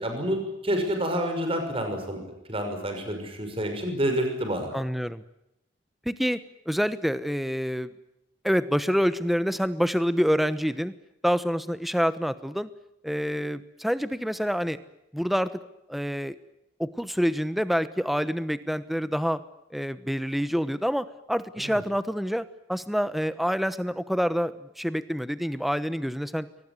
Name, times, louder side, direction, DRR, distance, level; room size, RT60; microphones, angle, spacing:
voice 1, 0.0-2.2 2.5-4.7 21.6-21.8, equal, 30° right, 5 dB, 6.0 m, -28 dB
voice 2, 4.7-5.2 6.0-6.4 6.7-7.9 8.4-10.9 11.2-12.7 13.0-14.8 15.1-15.6 15.9-16.4 16.8-19.4 19.7-26.5, equal, ahead, 14 dB, 1.0 m, -27 dB
23.5 x 20.0 x 9.6 m, 0.85 s
head